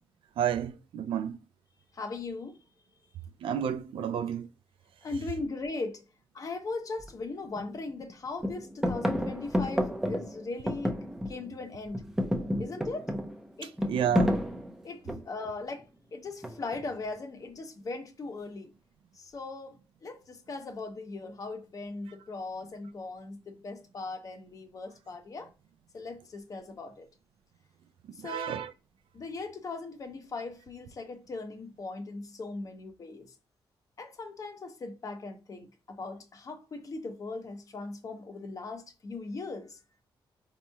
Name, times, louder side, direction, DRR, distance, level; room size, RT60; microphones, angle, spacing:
voice 1, 0.4-1.4 3.4-4.5 13.8-14.4 28.2-28.7, right 9 dB, 85° right, 0.4 m, -30 dB
voice 2, 1.9-2.6 5.0-6.0 6.3-10.9 11.3-12.0 12.6-13.1 13.6-13.7 14.8-18.7 19.2-19.8 20.0-25.5 25.9-27.1 28.2-28.6 29.1-33.3 34.0-39.8, left 3 dB, 40° left, 0.7 m, -39 dB
sound 1, 7.0-7.1 7.6-8.1 8.4-11.6 11.9-15.5 16.4-16.9, equal, 5° right, 0.5 m, -31 dB
4.1 x 2.9 x 2.2 m
wide cardioid pair, 135°, 9 cm